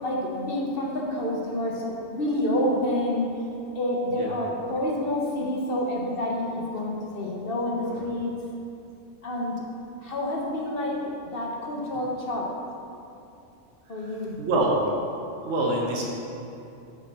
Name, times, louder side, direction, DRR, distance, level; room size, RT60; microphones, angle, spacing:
voice 1, 0.0-3.5 3.7-8.3 9.2-9.6 10.0-12.5 13.9-14.4, left 1 dB, 45° left, -2 dB, 1.1 m, -28 dB
voice 2, 14.4-14.7 15.4-16.1, right 2 dB, 60° right, -2 dB, 1.2 m, -25 dB
7.1 x 6.4 x 4.2 m, 2.8 s
omnidirectional pair, 1.4 m